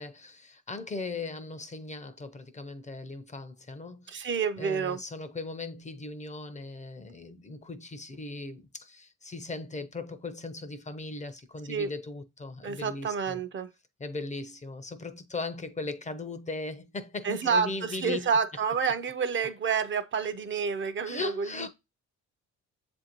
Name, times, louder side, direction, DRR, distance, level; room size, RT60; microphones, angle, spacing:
voice 1, 0.0-4.3 4.6-13.4 14.0-18.3 21.0-21.7, left 3 dB, 25° left, 0.5 m, -38 dB
voice 2, 4.1-5.0 11.7-11.9 12.6-13.7 17.2-21.7, right 6 dB, 40° right, 0.4 m, -29 dB
7.1 x 2.6 x 2.9 m
cardioid pair, 90°, 30 cm